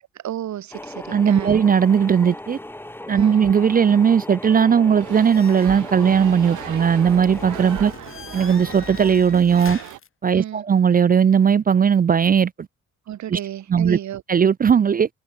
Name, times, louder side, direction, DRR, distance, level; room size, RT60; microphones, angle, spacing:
voice 1, 0.1-1.6 3.1-3.4 7.6-7.9 10.3-10.6 13.1-14.2, right 11 dB, 70° right, 2.2 m, -33 dB
sound 1, 0.7-7.9, left 1 dB, 5° left, 2.3 m, -37 dB
voice 2, 1.1-2.6 3.1-7.9 8.3-9.8 10.2-12.5 13.3-13.4 13.7-14.0 14.3-15.1, right 7 dB, 30° right, 0.5 m, -17 dB
sound 2, 5.0-10.0, right 15 dB, 85° right, 1.4 m, -37 dB
sound 3, 5.1-10.1, left 7 dB, 45° left, 1.9 m, -40 dB
cardioid pair, 90°, 30 cm